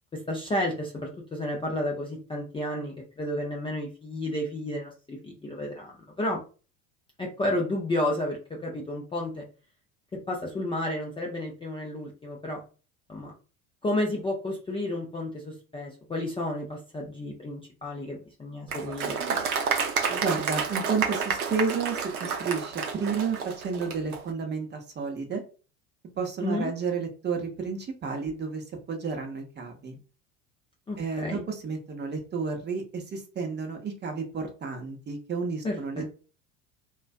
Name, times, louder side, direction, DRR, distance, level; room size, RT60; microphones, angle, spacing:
voice 1, 0.1-6.4 7.2-9.4 10.3-12.6 13.1-13.3 13.8-19.2 26.4-26.7 30.9-31.4 35.6-36.0, left 1 dB, 15° left, -2 dB, 0.4 m, -31 dB
Applause, 18.7-24.2, right 6 dB, 90° right, 0.5 m, -30 dB
voice 2, 20.1-25.4 26.2-30.0 31.0-36.1, right 5 dB, 25° right, 2 dB, 0.7 m, -31 dB
2.4 x 2.2 x 2.4 m, 0.36 s
hypercardioid pair, 70°, 43 cm